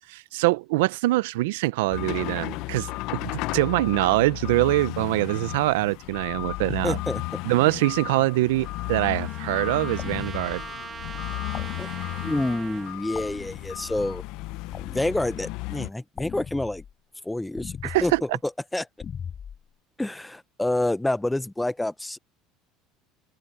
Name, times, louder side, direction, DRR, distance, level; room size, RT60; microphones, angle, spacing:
voice 1, 0.1-7.0 7.4-10.6 17.8-18.2, right 19 dB, 85° right, 0.7 m, -24 dB
sound 1, 1.9-15.9, left 21 dB, 65° left, 0.7 m, -34 dB
voice 2, 6.8-7.2 11.8-11.9 12.2-14.2 14.9-16.8 17.2-18.9 20.0-22.2, left 1 dB, 5° left, 0.8 m, -28 dB
Trumpet, 7.9-13.0, right 6 dB, 30° right, 1.0 m, -41 dB
sound 2, 10.0-10.7 11.5-12.4 13.1-14.0 14.7-15.5 16.2-16.9 17.6-18.2 19.0-19.6, left 7 dB, 35° left, 6.2 m, -39 dB
open air
supercardioid pair, 100°, 0 cm